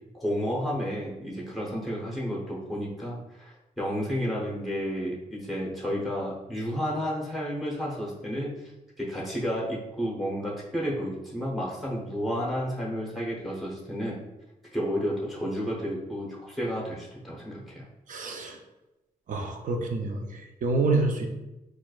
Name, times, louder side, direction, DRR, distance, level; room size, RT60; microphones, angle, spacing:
voice 1, 0.1-8.7 9.0-14.2 14.7-17.8, equal, ahead, -5 dB, 0.8 m, -31 dB
voice 2, 18.1-18.6 19.3-21.3, right 3 dB, 65° right, 3 dB, 0.5 m, -28 dB
4.3 x 2.4 x 2.4 m, 0.99 s
wide cardioid pair, 110°, 14 cm